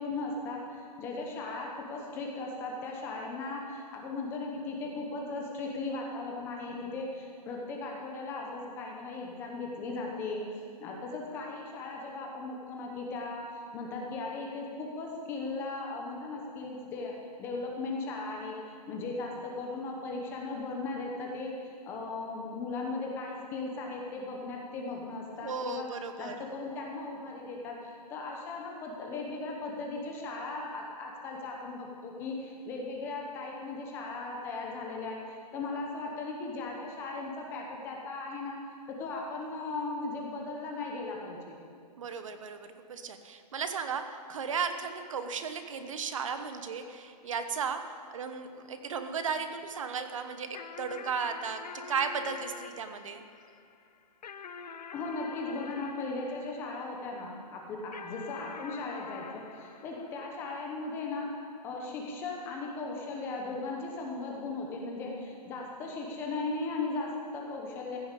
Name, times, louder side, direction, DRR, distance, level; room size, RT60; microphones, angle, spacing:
voice 1, 0.0-17.1 17.4-18.6 18.9-38.6 38.9-41.6 54.9-61.3 61.6-68.0, left 3 dB, 10° left, 0 dB, 0.8 m, -37 dB
voice 2, 25.4-26.3 42.0-53.2, right 6 dB, 50° right, 8 dB, 1.0 m, -35 dB
sound 1, 50.5-57.2 57.9-60.7, left 6 dB, 75° left, 0.9 m, -46 dB
15.5 x 7.0 x 8.2 m, 2.5 s
hypercardioid pair, 175°, 21 cm